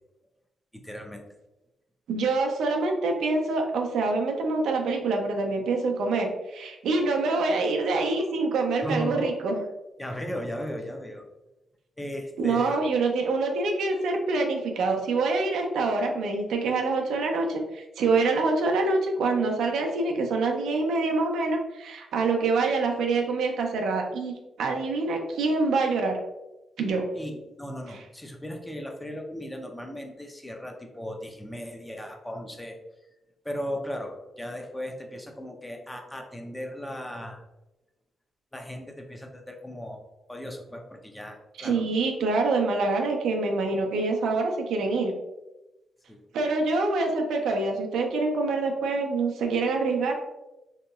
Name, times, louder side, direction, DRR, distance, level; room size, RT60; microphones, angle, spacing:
voice 1, 0.8-1.2 8.8-9.3 10.0-11.3 12.0-12.8 27.1-32.8 33.4-37.4 38.5-40.0 40.3-41.8 46.1-46.2, equal, 15° left, 3 dB, 0.5 m, -36 dB
voice 2, 2.1-9.6 12.4-26.2 26.8-27.1 41.6-45.1 46.3-50.1, right 3 dB, 85° right, 2 dB, 0.4 m, -26 dB
2.9 x 2.8 x 2.3 m, 0.99 s
cardioid pair, 60°, 0 cm